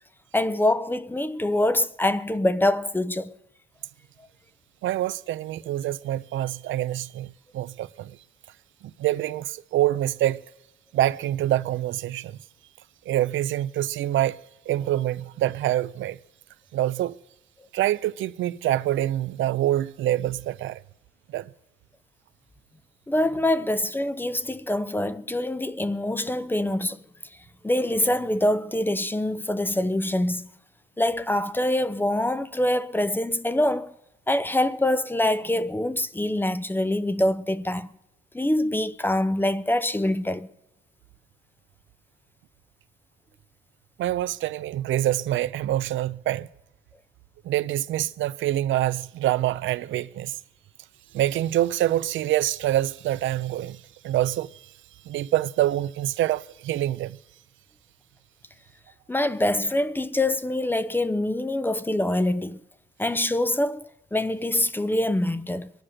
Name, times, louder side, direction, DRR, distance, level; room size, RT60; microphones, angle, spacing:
voice 1, 0.3-3.4 23.1-27.0 27.6-30.5 31.0-33.9 34.3-37.9 38.3-40.5 59.1-62.6 63.0-65.7, left 1 dB, 10° left, 0.6 m, -25 dB
voice 2, 4.8-8.2 9.0-10.4 10.9-12.4 13.1-14.4 14.7-16.2 16.7-17.2 17.7-20.8 21.3-21.5 44.0-46.5 47.4-50.4 51.1-54.6 55.1-57.2, right 13 dB, 75° right, 0.5 m, -26 dB
22.5 x 10.0 x 6.4 m
cardioid pair, 90°, 20 cm